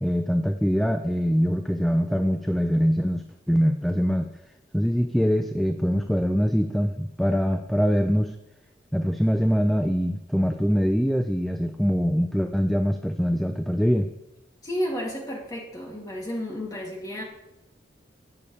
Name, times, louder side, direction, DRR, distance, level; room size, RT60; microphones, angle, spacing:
voice 1, 0.0-4.3 4.7-8.3 8.9-14.1, equal, ahead, 6 dB, 0.4 m, -23 dB
voice 2, 14.6-17.2, equal, 20° left, -3 dB, 2.6 m, -32 dB
17.0 x 6.9 x 3.3 m, 0.91 s
head